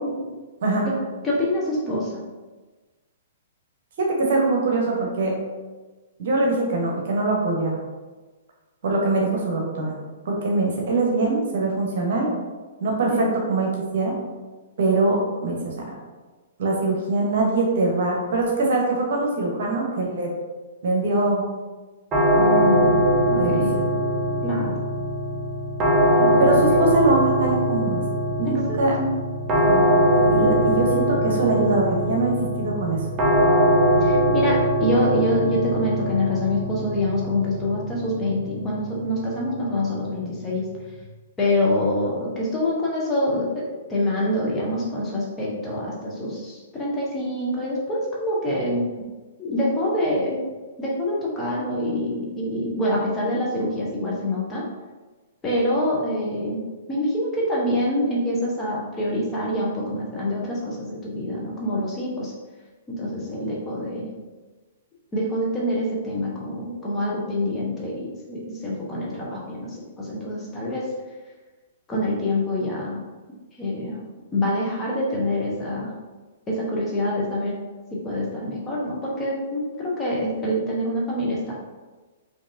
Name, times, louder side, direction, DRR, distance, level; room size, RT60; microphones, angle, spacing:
voice 1, 1.2-2.1 13.1-13.3 22.4-23.8 24.4-24.8 26.2-26.5 28.7-29.1 34.0-40.7 41.4-48.9 49.4-50.4 50.8-54.6 55.4-56.6 56.9-62.3 62.9-64.1 65.1-70.9 71.9-73.0 73.6-74.0 74.3-75.9 76.5-77.6 77.9-81.5, left 1 dB, 15° left, -5 dB, 1.0 m, -26 dB
voice 2, 4.0-5.4 6.2-7.8 8.8-9.9 10.2-12.3 12.8-14.2 14.8-15.9 16.6-20.3 20.8-21.4 23.3-23.8 26.4-28.0 28.4-28.9 29.6-33.0, right 2 dB, 55° right, -1 dB, 1.0 m, -23 dB
sound 1, 22.1-41.0, equal, 25° right, 0.7 m, -22 dB
5.0 x 2.8 x 2.7 m, 1.3 s
figure-of-eight pair, 110°, 0 cm